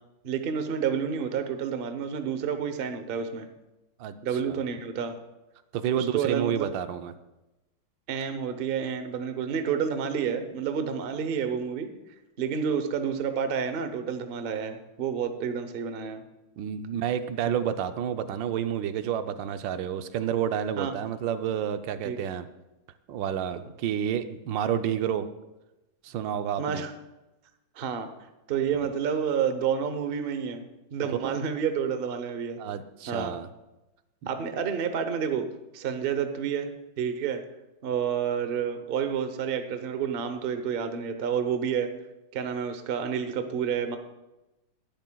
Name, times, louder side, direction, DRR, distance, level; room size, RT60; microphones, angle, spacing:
voice 1, 0.2-3.5 4.2-5.1 5.9-6.7 8.1-11.9 12.4-16.2 20.8-20.9 22.0-22.2 26.6-26.9 27.8-28.1 28.5-30.6 30.9-32.6 33.1-33.4 34.3-36.7 37.0-37.4 37.8-41.9 42.3-44.0, right 7 dB, 50° right, 8 dB, 0.6 m, -29 dB
voice 2, 4.0-4.6 5.7-7.1 16.6-22.5 23.1-25.3 26.0-26.8 31.1-31.4 32.6-33.5 34.2-34.3, right 9 dB, 80° right, 10 dB, 1.4 m, -30 dB
18.5 x 10.5 x 2.3 m, 1.0 s
omnidirectional pair, 2.0 m